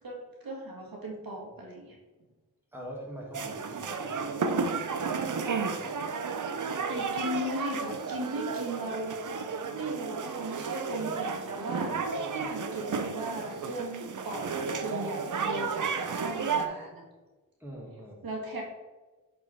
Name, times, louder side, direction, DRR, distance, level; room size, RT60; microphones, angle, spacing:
voice 1, 0.0-2.0 6.9-9.2 9.7-17.0 18.2-18.6, right 1 dB, 80° right, -2 dB, 1.7 m, -37 dB
voice 2, 2.7-4.3 17.6-18.3, equal, 5° right, -3 dB, 2.3 m, -43 dB
sound 1, 3.3-16.7, right 5 dB, 60° right, 0.7 m, -32 dB
8.0 x 4.4 x 3.5 m, 1.2 s
cardioid pair, 50°, 34 cm